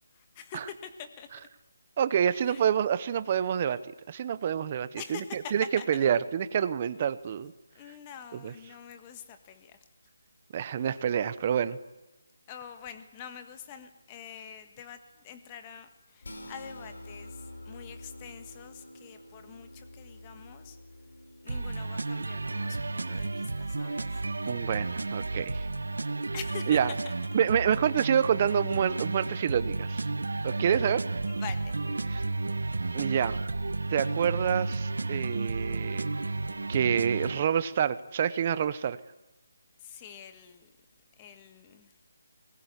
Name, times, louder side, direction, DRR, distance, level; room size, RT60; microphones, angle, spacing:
voice 1, 0.1-1.3 2.4-2.7 5.0-6.0 7.7-9.8 12.5-20.8 21.4-24.2 26.3-27.1 31.3-31.9 39.8-40.7 41.2-42.0, left 8 dB, 15° left, 8 dB, 1.6 m, -45 dB
voice 2, 2.0-7.5 8.4-8.5 10.5-11.8 24.5-25.7 26.7-26.9 27.3-30.1 30.4-31.0 32.9-33.4 33.9-36.1 36.7-39.0, right 8 dB, 25° right, 15 dB, 0.9 m, -27 dB
sound 1, 16.2-22.7, left 1 dB, 75° left, 5.7 m, -48 dB
sound 2, 21.5-37.5, right 3 dB, 85° right, 1.4 m, -32 dB
22.5 x 20.5 x 9.8 m, 1.0 s
hypercardioid pair, 175°, 0 cm